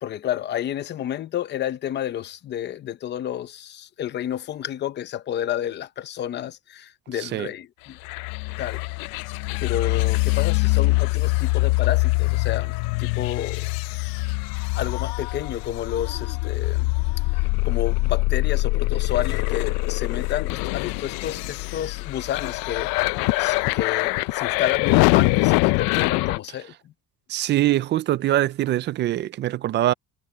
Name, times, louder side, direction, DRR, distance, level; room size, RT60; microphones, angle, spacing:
voice 1, 0.0-8.0 8.6-8.8 9.6-12.7 13.0-13.7 14.8-16.9 17.3-23.1 23.4-26.9, left 11 dB, 30° left, 0.8 m, -30 dB
voice 2, 7.2-7.5 27.3-29.9, right 14 dB, 30° right, 0.4 m, -23 dB
sound 1, 8.0-26.4, left 22 dB, 75° left, 0.6 m, -23 dB
cardioid pair, 180°, 35 cm